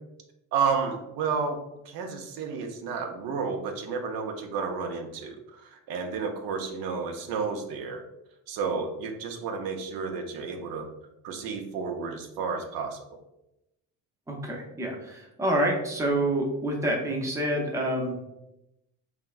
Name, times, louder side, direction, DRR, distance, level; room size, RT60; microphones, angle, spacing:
voice 1, 0.5-1.6 1.9-8.0 8.5-10.9 11.2-13.2, right 5 dB, 70° right, 4 dB, 0.5 m, -31 dB
voice 2, 14.3-18.1, right 1 dB, 10° right, -1 dB, 0.5 m, -27 dB
3.2 x 2.1 x 2.3 m, 0.89 s
cardioid pair, 95°, 36 cm